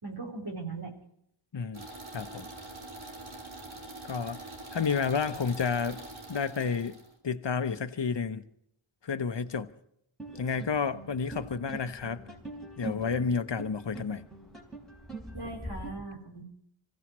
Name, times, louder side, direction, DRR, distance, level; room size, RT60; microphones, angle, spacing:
voice 1, 0.0-0.9 15.3-16.4, right 3 dB, 55° right, 4.2 m, -39 dB
sound 1, 1.7-7.1, right 2 dB, 75° right, 2.8 m, -44 dB
voice 2, 2.1-2.5 4.1-4.4 4.7-6.0 6.3-7.0 7.2-8.4 9.0-9.7 10.4-12.2 12.8-14.3, left 5 dB, 60° left, 1.0 m, -30 dB
sound 2, 10.2-15.9, right 2 dB, ahead, 4.1 m, -43 dB
25.5 x 15.5 x 3.1 m
wide cardioid pair, 45°, 48 cm